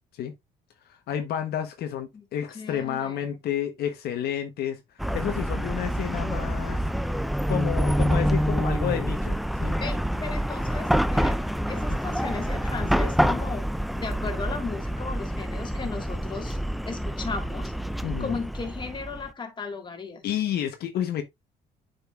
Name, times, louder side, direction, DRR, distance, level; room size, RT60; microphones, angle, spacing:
voice 1, 0.9-6.8 7.5-9.8 11.9-12.0 18.0-18.4 20.2-21.2, left 10 dB, 70° left, 1.1 m, -30 dB
voice 2, 2.5-3.3 9.8-11.4 11.7-13.7 13.9-16.6 16.9-17.7 18.2-20.2, left 4 dB, 25° left, 1.8 m, -36 dB
Chatter / Car passing by / Traffic noise roadway noise, 5.0-19.3, equal, ahead, 0.4 m, -27 dB
8.1 x 5.3 x 2.4 m
cardioid pair, 110°, 17 cm